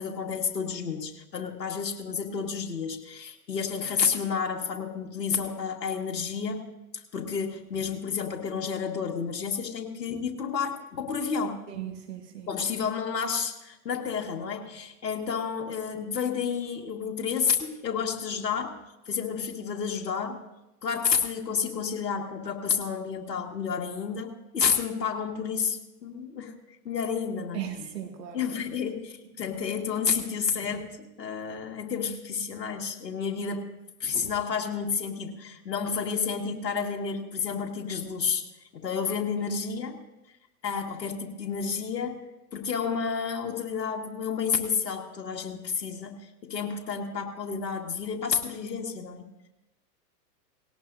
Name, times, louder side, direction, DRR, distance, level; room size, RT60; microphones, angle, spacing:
voice 1, 0.0-6.7 6.9-11.6 12.5-18.8 19.1-20.4 20.8-26.6 26.9-27.6 28.3-33.7 34.0-38.5 38.7-40.0 40.6-42.2 42.5-49.5, left 6 dB, 85° left, 2 dB, 2.0 m, -30 dB
voice 2, 11.7-12.5 27.5-28.4, right 10 dB, 75° right, 3 dB, 2.5 m, -37 dB
19.0 x 18.0 x 2.7 m, 0.96 s
hypercardioid pair, 110°, 48 cm